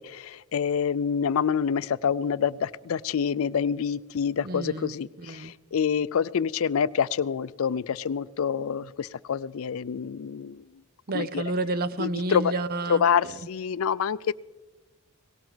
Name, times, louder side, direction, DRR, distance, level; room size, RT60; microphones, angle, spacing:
voice 1, 0.5-5.1 5.7-10.5 11.1-11.4 12.0-12.5 12.9-14.3, left 7 dB, 70° left, 18 dB, 0.4 m, -26 dB
voice 2, 4.4-5.5 11.1-13.0, right 2 dB, 45° right, 15 dB, 0.6 m, -30 dB
18.0 x 18.0 x 4.0 m, 1.1 s
head